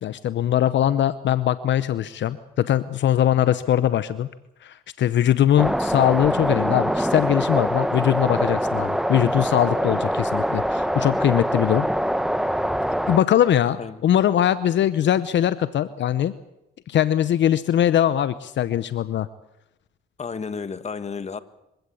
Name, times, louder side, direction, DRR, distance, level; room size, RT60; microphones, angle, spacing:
voice 1, 0.0-4.3 4.6-11.9 13.1-16.3 16.9-19.3, left 11 dB, 65° left, 0.9 m, -21 dB
sound 1, 5.6-13.2, equal, ahead, 1.3 m, -24 dB
sound 2, 7.2-14.8, left 6 dB, 85° left, 4.9 m, -52 dB
voice 2, 20.2-21.4, left 5 dB, 35° left, 1.6 m, -32 dB
25.0 x 16.5 x 8.6 m
cardioid pair, 90°, 20 cm